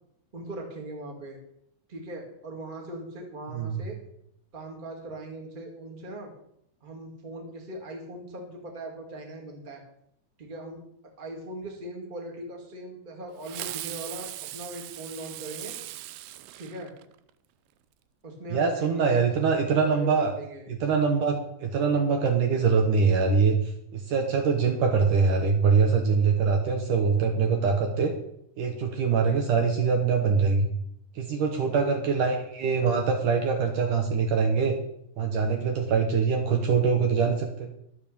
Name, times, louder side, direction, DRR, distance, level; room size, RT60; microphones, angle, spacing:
voice 1, 0.3-1.4 1.9-4.0 4.5-6.3 6.8-9.8 10.4-10.8 11.2-15.8 16.6-16.9 18.2-20.7 31.5-31.7, right 1 dB, 20° right, 0 dB, 1.7 m, -40 dB
voice 2, 3.5-3.8 18.5-20.3 20.8-28.1 28.6-30.7 31.2-34.7 35.2-37.7, right 5 dB, 65° right, 3 dB, 2.4 m, -23 dB
Fireworks, 13.4-17.3, right 15 dB, 80° right, 2.0 m, -39 dB
12.0 x 7.4 x 6.9 m, 0.74 s
omnidirectional pair, 4.5 m